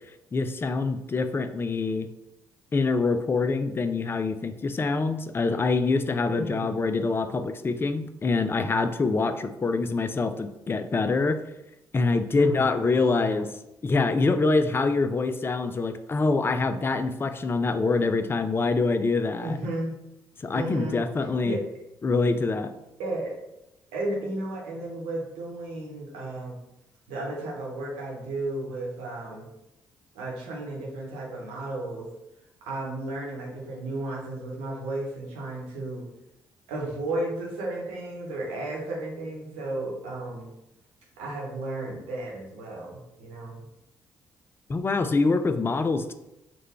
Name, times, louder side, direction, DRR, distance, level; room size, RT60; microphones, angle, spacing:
voice 1, 0.3-2.1 2.7-11.4 11.9-13.5 13.8-19.6 20.4-21.6 22.0-22.7 44.7-46.1, left 3 dB, 20° left, 9 dB, 0.3 m, -25 dB
voice 2, 6.3-6.7 12.4-13.4 19.4-20.0 20.5-21.0 21.4-21.6 23.0-23.3 23.9-26.5 27.1-29.5 30.1-32.1 32.6-36.1 36.7-40.5 41.2-43.6, right 2 dB, 70° right, -3 dB, 0.9 m, -33 dB
3.6 x 2.1 x 3.4 m, 0.89 s
figure-of-eight pair, 40°, 10 cm